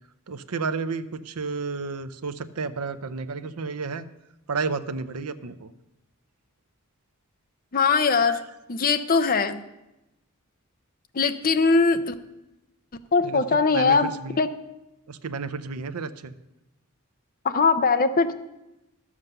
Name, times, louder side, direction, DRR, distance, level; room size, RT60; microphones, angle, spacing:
voice 1, 0.3-4.1 4.5-5.7 8.3-8.4 13.2-14.0 14.2-14.4 15.1-16.3, right 4 dB, 80° right, 12 dB, 0.7 m, -31 dB
voice 2, 7.7-8.4 8.7-9.6 11.1-12.1 13.1-14.1 14.4-14.5 17.4-18.3, left 4 dB, 40° left, 10 dB, 0.6 m, -21 dB
12.0 x 7.3 x 6.6 m, 0.94 s
head